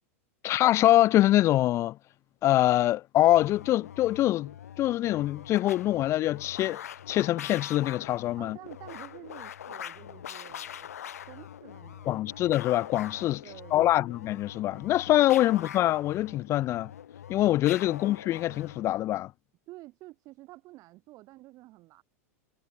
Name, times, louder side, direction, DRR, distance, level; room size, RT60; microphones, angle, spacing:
voice 1, 0.4-2.0 2.4-4.5 4.8-8.6 12.1-13.4 13.7-16.9 17.3-19.3, left 14 dB, 35° left, 0.3 m, -24 dB
sound 1, 3.2-18.9, left 9 dB, 85° left, 2.3 m, -43 dB
voice 2, 8.4-10.9 11.3-12.5 13.4-14.1 15.4-15.7 17.9-18.0 19.7-22.0, right 18 dB, 45° right, 2.7 m, -49 dB
hypercardioid pair, 105°, 8 cm